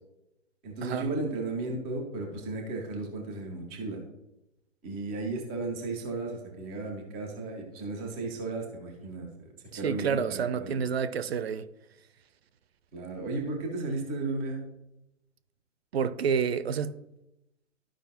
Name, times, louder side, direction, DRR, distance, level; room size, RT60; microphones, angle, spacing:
voice 1, 0.6-4.0 4.8-9.5 9.8-10.8 12.9-14.6, right 3 dB, ahead, 0.4 m, -34 dB
voice 2, 9.7-11.6 15.9-17.0, right 6 dB, 55° right, 0.6 m, -29 dB
12.5 x 4.9 x 2.9 m
figure-of-eight pair, 130°, 38 cm